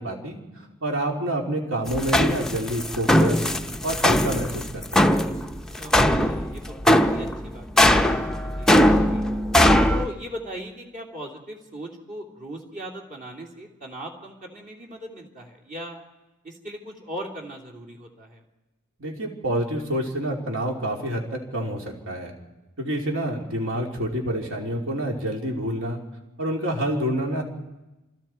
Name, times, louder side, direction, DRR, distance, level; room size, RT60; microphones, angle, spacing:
voice 1, 0.0-3.4 3.8-5.2 19.0-22.3 22.8-26.0 26.4-27.4, right 1 dB, 60° right, 1 dB, 3.3 m, -28 dB
sound 1, 1.9-10.1, left 1 dB, 5° left, 0.6 m, -20 dB
voice 2, 5.8-9.4 9.9-16.0 16.4-18.4, equal, 35° right, 1 dB, 3.0 m, -39 dB
27.5 x 24.5 x 4.5 m, 1.0 s
head